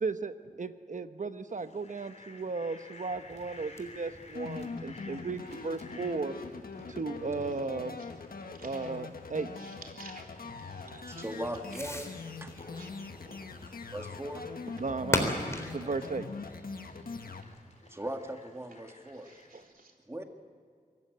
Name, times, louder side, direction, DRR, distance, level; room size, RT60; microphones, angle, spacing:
voice 1, 0.0-6.4 6.9-8.0 8.6-9.5 13.3-13.4 14.8-15.3 15.7-16.3, right 4 dB, 60° right, 10 dB, 1.0 m, -35 dB
Fowl, 1.5-19.6, left 2 dB, 50° left, 3.8 m, -55 dB
Fireworks, 3.0-17.6, left 1 dB, 20° left, 3.7 m, -42 dB
sound 1, 4.3-17.4, left 4 dB, 90° left, 1.4 m, -43 dB
voice 2, 8.5-8.9 9.6-10.2 10.6-11.3 12.8-12.9 19.2-19.9, right 3 dB, 80° right, 1 dB, 3.5 m, -52 dB
voice 3, 10.9-12.8 13.6-14.5 15.7-15.9 16.5-17.0 17.9-19.3 20.1-20.2, right 1 dB, 15° right, 5 dB, 1.9 m, -41 dB
24.0 x 14.5 x 9.6 m, 2.2 s
wide cardioid pair, 70°, 15 cm